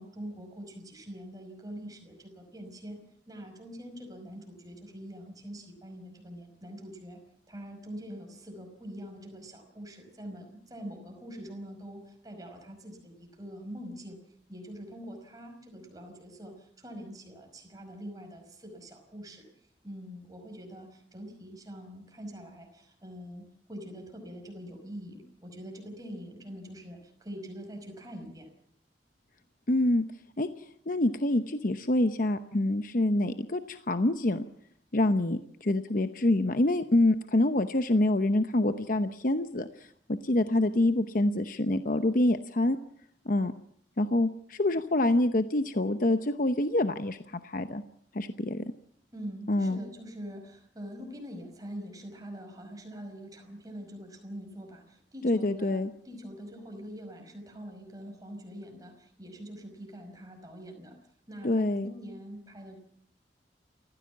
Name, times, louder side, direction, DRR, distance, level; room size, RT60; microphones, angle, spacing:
voice 1, 0.0-3.0 3.3-7.2 7.5-14.2 14.5-19.5 19.8-28.5 49.1-61.0 61.3-62.8, equal, 20° right, 3 dB, 5.3 m, -44 dB
voice 2, 29.7-30.1 30.4-34.4 34.9-42.8 43.2-43.5 44.0-47.8 48.1-48.7 49.5-49.8 55.2-55.9 61.4-61.9, left 1 dB, 50° left, 9 dB, 0.8 m, -26 dB
28.5 x 15.0 x 7.3 m, 0.66 s
head